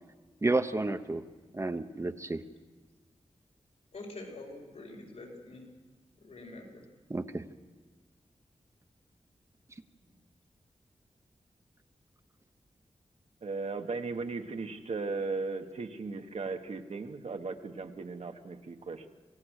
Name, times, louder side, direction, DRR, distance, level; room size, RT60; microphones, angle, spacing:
voice 1, 0.4-1.2 1.5-2.4 7.1-7.5, right 2 dB, 25° right, 9 dB, 0.8 m, -31 dB
voice 2, 3.9-5.6 6.2-6.9 10.0-10.1, left 2 dB, 75° left, 0 dB, 4.8 m, -46 dB
voice 3, 13.4-19.1, right 4 dB, 70° right, 6 dB, 1.4 m, -37 dB
27.0 x 17.5 x 6.5 m, 1.3 s
wide cardioid pair, 115°, 12 cm